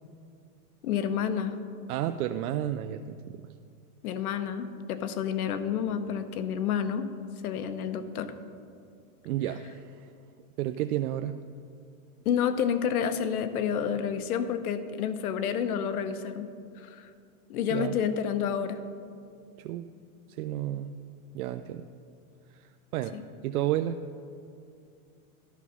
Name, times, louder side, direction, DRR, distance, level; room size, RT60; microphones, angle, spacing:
voice 1, 0.8-1.6 4.0-7.1 7.4-8.3 12.2-16.5 16.8-17.1 17.5-18.8 23.1-23.2, left 8 dB, 85° left, 10 dB, 0.9 m, -29 dB
voice 2, 1.9-3.5 9.2-10.1 10.6-11.4 17.7-17.9 19.6-19.9 20.3-20.9 21.3-21.9 22.5-23.2 23.4-24.0, right 12 dB, 90° right, 9 dB, 0.5 m, -32 dB
11.5 x 6.0 x 5.6 m, 2.4 s
supercardioid pair, 175°, 43 cm